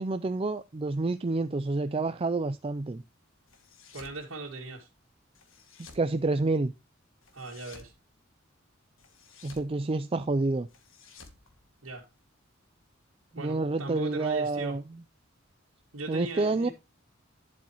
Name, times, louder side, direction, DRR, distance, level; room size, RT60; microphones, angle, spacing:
voice 1, 0.0-3.0 5.9-6.7 9.4-10.7 13.3-14.8 16.1-16.7, right 3 dB, 25° right, 0.4 m, -28 dB
sound 1, 3.5-4.2 5.4-6.1 7.2-7.9 9.0-9.7 10.7-12.2, left 4 dB, 75° left, 2.0 m, -53 dB
voice 2, 3.9-4.9 7.3-7.9 11.8-12.1 13.3-14.8 15.9-16.7, right 2 dB, 85° right, 2.2 m, -38 dB
11.0 x 7.9 x 3.0 m
head